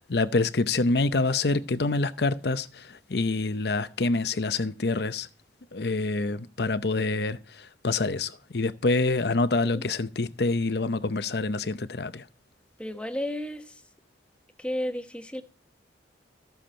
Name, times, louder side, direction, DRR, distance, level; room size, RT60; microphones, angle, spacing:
voice 1, 0.0-5.3 5.7-12.2, left 3 dB, 60° left, 0.7 m, -26 dB
voice 2, 12.8-13.8 14.6-15.4, left 1 dB, 5° left, 1.1 m, -33 dB
14.5 x 7.7 x 4.4 m
head